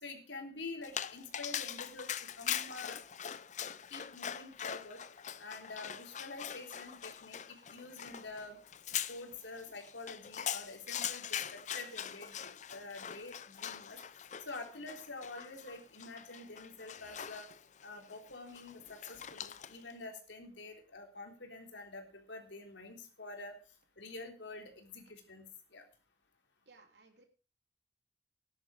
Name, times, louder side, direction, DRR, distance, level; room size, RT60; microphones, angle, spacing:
voice 1, 0.0-3.0 3.9-5.0 5.4-8.6 9.1-14.0 14.5-17.5 17.8-23.5 24.0-25.4 25.7-25.8, left 3 dB, 85° left, 3 dB, 3.7 m, -47 dB
Dog, 0.8-19.9, left 9 dB, 40° left, 0.6 m, -42 dB
voice 2, 26.6-27.2, right 3 dB, 70° right, 5 dB, 3.3 m, -61 dB
14.0 x 11.0 x 5.1 m, 0.35 s
head